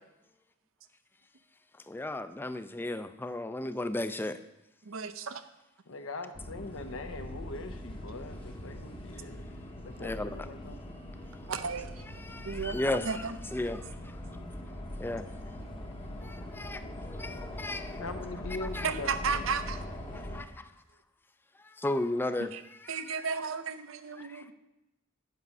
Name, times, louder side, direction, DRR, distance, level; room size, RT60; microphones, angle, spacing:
voice 1, 1.9-4.4 10.0-10.3 12.3-13.1 13.5-13.8 15.0-15.3 16.2-18.0 18.8-18.9 20.3-20.6 21.8-22.5 24.2-24.3, left 1 dB, 10° left, 11 dB, 0.3 m, -34 dB
voice 2, 4.8-5.5 11.5-12.0 12.4-12.8 13.0-13.4 18.8-19.9 22.4-22.6 22.9-24.5, right 5 dB, 85° right, 11 dB, 0.6 m, -34 dB
voice 3, 5.9-9.4 9.8-10.8 18.0-19.5, left 3 dB, 85° left, 7 dB, 0.9 m, -42 dB
sound 1, 6.3-20.4, left 1 dB, 25° left, 0.9 m, -42 dB
8.3 x 5.9 x 5.4 m, 0.94 s
head